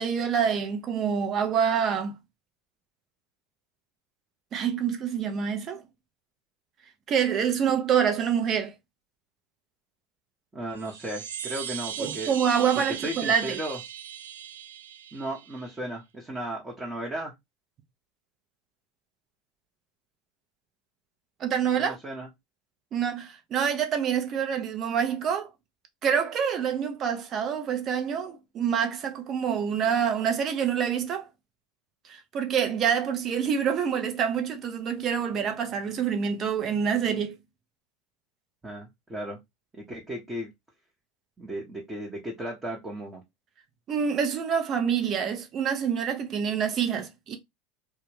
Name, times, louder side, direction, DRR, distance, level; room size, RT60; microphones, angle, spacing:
voice 1, 0.0-2.2 4.5-5.8 7.1-8.7 12.0-13.6 21.4-22.0 22.9-25.5 26.0-31.2 32.1-37.4 43.9-47.4, right 7 dB, 40° right, 0.6 m, -26 dB
voice 2, 10.5-12.3 12.7-13.8 15.1-17.3 21.8-22.3 38.6-39.4 39.7-40.5 41.4-43.2, right 1 dB, 15° right, 0.8 m, -35 dB
sound 1, 10.7-15.8, right 9 dB, 85° right, 0.3 m, -38 dB
2.2 x 2.1 x 3.2 m
hypercardioid pair, 85°, 0 cm